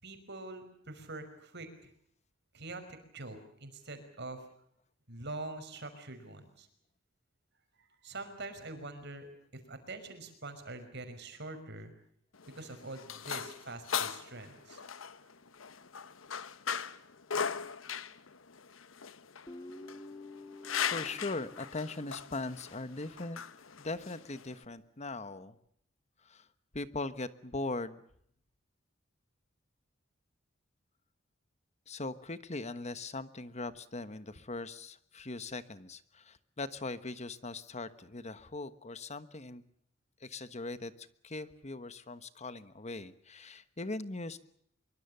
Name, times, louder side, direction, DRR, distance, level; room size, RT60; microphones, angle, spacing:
voice 1, 0.0-1.9 2.5-4.5 5.1-6.7 7.8-11.9 12.4-15.0, right 2 dB, 60° right, 8 dB, 5.6 m, -45 dB
sound 1, 12.3-24.7, left 7 dB, 85° left, 1.2 m, -39 dB
Guitar, 19.5-22.8, left 2 dB, 20° left, 2.0 m, -50 dB
voice 2, 20.9-23.4 23.8-25.6 26.2-26.5 26.7-28.0 31.9-39.6 40.2-44.4, left 2 dB, 35° left, 12 dB, 1.3 m, -40 dB
25.0 x 24.0 x 6.9 m, 0.68 s
head